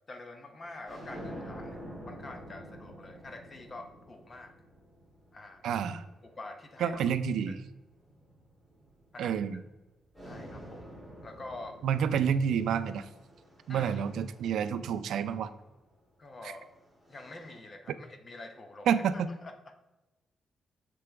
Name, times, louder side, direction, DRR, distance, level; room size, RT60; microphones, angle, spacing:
voice 1, 0.1-4.5 5.3-5.7 6.2-7.0 7.5-7.6 9.1-9.6 10.2-10.9 11.2-11.8 13.7-14.1 16.2-16.7 17.1-19.7, left 2 dB, 30° left, 6 dB, 0.8 m, -46 dB
sound 1, 0.6-7.2 7.9-9.8 10.1-15.5 16.5-17.6, equal, 5° left, 1.7 m, -49 dB
voice 2, 5.6-6.0 6.8-7.6 9.2-9.6 11.8-13.1 13.7-15.5 18.9-19.1, right 8 dB, 85° right, 12 dB, 0.4 m, -29 dB
6.9 x 6.8 x 3.4 m, 1.1 s
wide cardioid pair, 165°, 0 cm